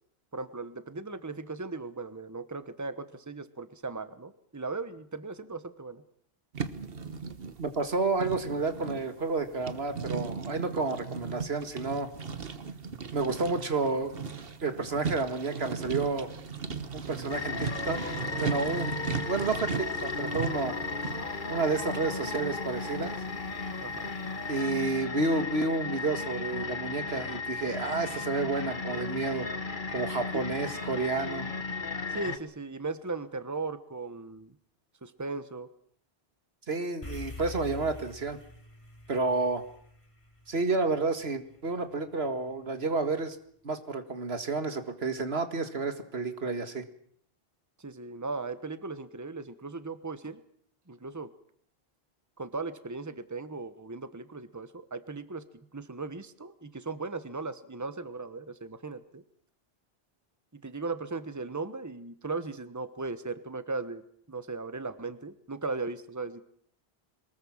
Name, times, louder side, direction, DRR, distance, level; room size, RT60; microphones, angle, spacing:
voice 1, 0.3-6.0 23.8-24.1 30.3-30.5 32.1-34.5 35.0-35.7 47.8-50.4 50.9-51.3 52.4-55.4 55.7-59.2 60.5-64.0 64.3-66.4, right 3 dB, 15° right, 12 dB, 1.2 m, -37 dB
sound 1, 6.5-24.2, right 5 dB, 70° right, 1.5 m, -38 dB
voice 2, 7.6-12.1 13.1-14.2 14.6-16.3 16.9-18.0 18.4-19.0 19.3-20.8 21.5-23.1 24.5-29.5 29.9-31.5 36.7-38.4 39.1-39.6 40.5-43.4 43.6-46.8, right 3 dB, 90° right, 9 dB, 2.1 m, -30 dB
sound 2, 17.3-32.4, left 4 dB, 55° left, 1.5 m, -35 dB
sound 3, 37.0-41.5, left 2 dB, 30° left, 3.1 m, -45 dB
23.0 x 20.5 x 7.3 m, 0.63 s
omnidirectional pair, 1.0 m